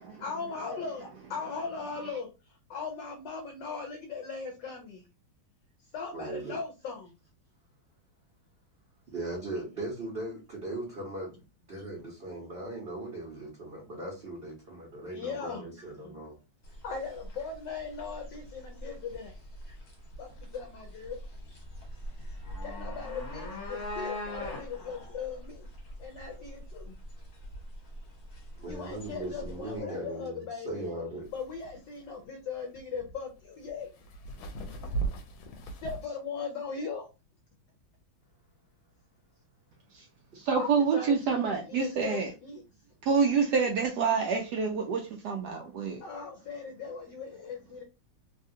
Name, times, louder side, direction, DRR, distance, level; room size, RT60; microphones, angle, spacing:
voice 1, 0.2-5.0 5.9-7.2 15.1-15.7 16.8-19.3 20.2-21.2 22.6-25.7 26.0-26.9 28.7-30.8 31.3-33.9 35.8-37.1 40.5-42.6 46.0-47.8, left 5 dB, 70° left, 1.2 m, -39 dB
voice 2, 6.1-6.6 9.1-11.4 11.7-16.4 19.7-19.8 28.6-31.3 34.9-35.0, right 1 dB, 45° right, 0.8 m, -39 dB
sound 1, 16.6-29.8, left 1 dB, 50° left, 1.5 m, -42 dB
sound 2, 31.2-36.1, right 4 dB, 85° left, 1.4 m, -38 dB
voice 3, 40.4-42.3 43.0-46.0, right 5 dB, 75° right, 0.9 m, -27 dB
3.4 x 2.4 x 2.7 m
omnidirectional pair, 2.2 m